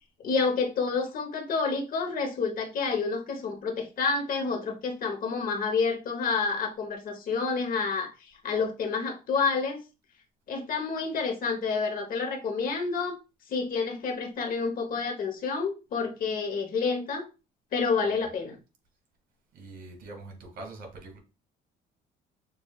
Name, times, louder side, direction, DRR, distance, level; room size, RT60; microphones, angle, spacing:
voice 1, 0.2-9.8 10.5-13.1 13.5-17.3 17.7-18.6, left 4 dB, 55° left, 1.2 m, -29 dB
voice 2, 19.5-21.2, right 2 dB, 65° right, 2.1 m, -43 dB
6.4 x 2.7 x 2.4 m
cardioid pair, 110°, 17 cm